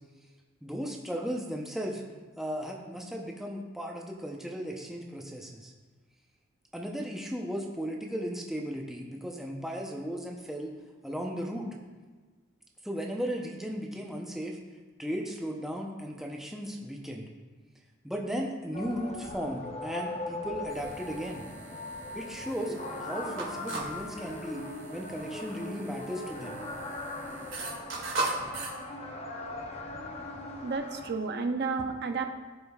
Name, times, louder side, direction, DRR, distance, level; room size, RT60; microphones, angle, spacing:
voice 1, 0.6-2.0 2.4-5.7 6.7-10.7 11.0-11.7 12.8-14.6 15.0-17.2 18.0-21.5 22.1-22.7 23.0-26.6, equal, ahead, 0 dB, 0.7 m, -36 dB
sound 1, 18.7-31.1, left 2 dB, 30° left, 0.6 m, -40 dB
sound 2, 20.7-28.7, right 2 dB, 85° right, 2.0 m, -39 dB
voice 2, 30.6-32.3, right 4 dB, 55° right, 6 dB, 0.5 m, -31 dB
14.5 x 5.2 x 2.4 m, 1.4 s
head